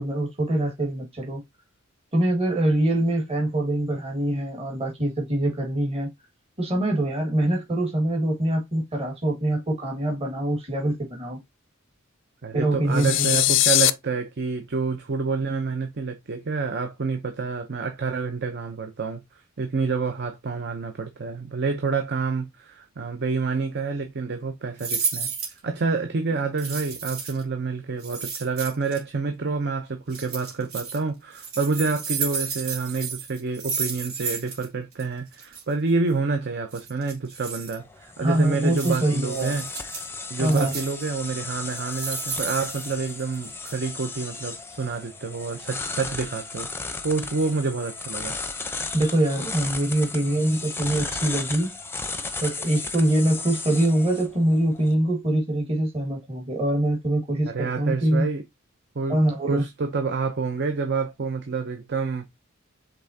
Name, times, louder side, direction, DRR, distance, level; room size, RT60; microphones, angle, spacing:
voice 1, 0.0-1.4 2.1-6.1 6.6-11.4 12.5-13.4 38.2-39.6 40.4-40.8 48.9-51.7 52.4-58.2 59.1-59.6, right 1 dB, 30° right, 1.7 m, -24 dB
voice 2, 12.4-19.2 19.6-25.3 25.6-39.7 40.3-46.7 47.0-48.3 57.4-58.4 58.9-59.2 59.5-62.3, right 4 dB, 55° right, 0.7 m, -28 dB
sound 1, 12.9-13.9, left 15 dB, 60° left, 0.4 m, -20 dB
sound 2, 24.8-25.6 26.6-27.4 28.0-29.0 30.1-31.0 31.3-34.7 34.9-35.0 35.3-35.6 36.7-37.8 38.8-39.0 39.3-40.1 40.4-41.0 41.7-43.4 43.6-43.7, right 5 dB, 85° right, 2.4 m, -32 dB
sound 3, 37.7-54.9, left 3 dB, 10° left, 0.7 m, -35 dB
5.5 x 3.5 x 2.7 m
head